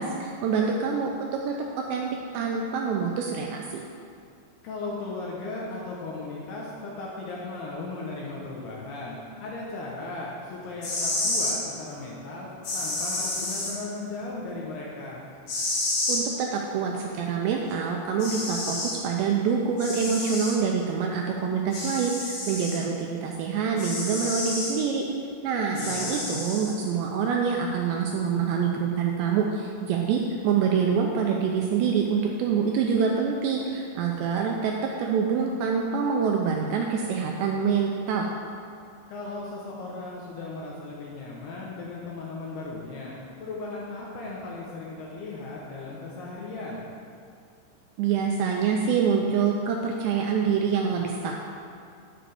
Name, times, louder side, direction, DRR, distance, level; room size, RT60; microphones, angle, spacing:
voice 1, 0.0-1.6 1.9-2.1 2.3-3.8 16.1-25.0 25.4-34.7 35.0-38.3 48.0-51.3, right 6 dB, 85° right, 0 dB, 2.6 m, -26 dB
voice 2, 4.6-15.2 25.7-26.2 39.1-46.9, left 3 dB, 75° left, -4 dB, 2.6 m, -37 dB
sound 1, 10.7-11.6 12.6-13.7 15.5-16.2 17.7-17.8 18.2-19.0 19.8-20.6 21.7-22.8 23.8-24.7 25.8-26.7, left 2 dB, 55° left, 2.7 m, -30 dB
9.9 x 9.8 x 3.5 m, 2.3 s
omnidirectional pair, 5.6 m